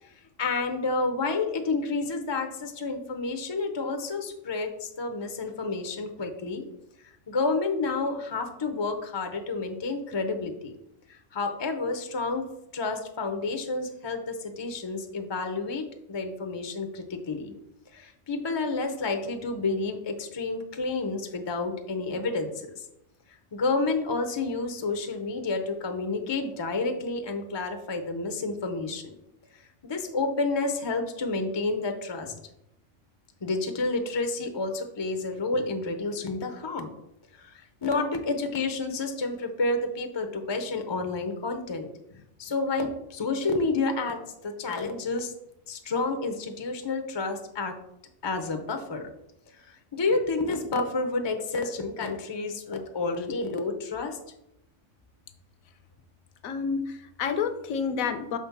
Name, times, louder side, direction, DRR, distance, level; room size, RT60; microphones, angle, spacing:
voice 1, 0.4-6.6 7.3-10.7 11.1-12.5 12.7-17.5 17.9-22.8 23.5-29.1 29.8-32.3 33.4-36.9 37.8-41.9 42.4-44.2 44.4-45.3 45.7-47.8 48.2-49.1 49.7-54.2, left 3 dB, 40° left, 6 dB, 0.3 m, -30 dB
voice 2, 56.4-58.4, left 6 dB, 80° left, 10 dB, 1.1 m, -29 dB
6.0 x 3.6 x 5.8 m, 0.82 s
omnidirectional pair, 1.4 m